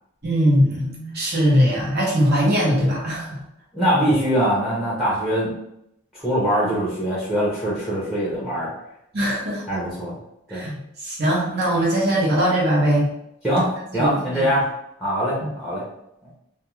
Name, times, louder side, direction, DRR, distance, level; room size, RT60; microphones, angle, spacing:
voice 1, 0.2-3.4 9.1-9.6 10.5-13.1 13.9-14.5, equal, 50° right, -3 dB, 0.9 m, -21 dB
voice 2, 3.7-5.5 6.2-8.7 9.7-10.1 10.5-10.7 13.4-13.7 13.9-14.7 15.0-15.8, equal, ahead, -7 dB, 0.7 m, -22 dB
2.5 x 2.2 x 3.0 m, 0.79 s
head